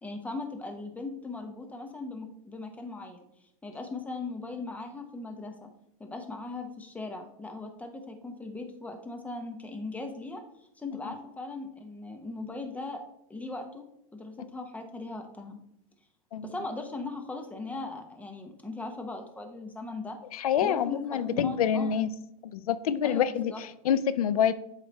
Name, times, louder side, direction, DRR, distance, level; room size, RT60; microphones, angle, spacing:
voice 1, 0.0-3.2 3.6-5.7 6.0-10.4 10.8-13.0 13.3-13.8 14.1-15.6 16.4-20.2 20.6-22.0 23.0-23.6, left 3 dB, 10° left, 4 dB, 1.0 m, -39 dB
voice 2, 20.3-22.1 22.4-24.5, left 8 dB, 90° left, 14 dB, 0.5 m, -27 dB
8.0 x 3.3 x 4.1 m, 0.77 s
hypercardioid pair, 115°, 18 cm